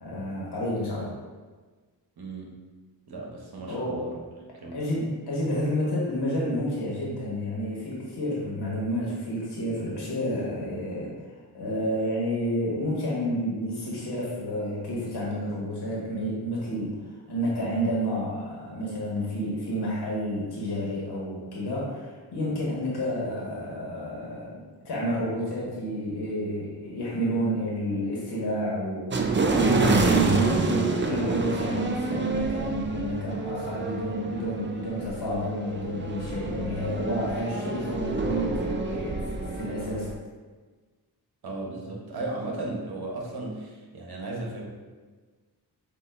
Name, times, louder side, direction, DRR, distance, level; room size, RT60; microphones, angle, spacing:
voice 1, 0.0-1.1 3.7-4.0 4.7-11.1 11.5-16.9 17.3-40.1, equal, 80° left, -5 dB, 1.4 m, -30 dB
voice 2, 2.2-2.5 3.1-4.2 4.5-4.8 41.4-44.7, right 2 dB, 70° right, -1 dB, 1.0 m, -35 dB
sound 1, 29.1-40.1, right 3 dB, 30° right, 0.5 m, -28 dB
6.8 x 2.7 x 2.5 m, 1.4 s
cardioid pair, 65°, 39 cm